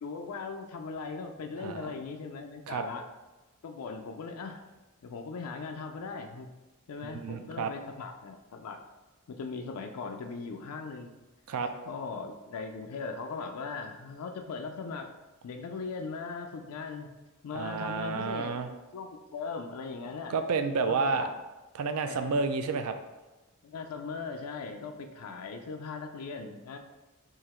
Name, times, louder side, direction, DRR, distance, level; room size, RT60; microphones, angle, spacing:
voice 1, 0.0-3.0 3.6-4.6 5.0-6.5 6.9-8.8 9.3-11.2 11.8-15.1 15.4-17.1 17.4-18.5 18.9-20.3 20.9-21.3 22.0-22.3 23.6-26.8, left 4 dB, 80° left, 4 dB, 0.4 m, -39 dB
voice 2, 1.6-1.9 2.7-2.8 7.0-7.7 11.5-11.7 17.5-18.7 20.3-21.3 21.7-22.9, right 4 dB, 75° right, 8 dB, 0.4 m, -30 dB
3.8 x 2.8 x 4.2 m, 1.1 s
head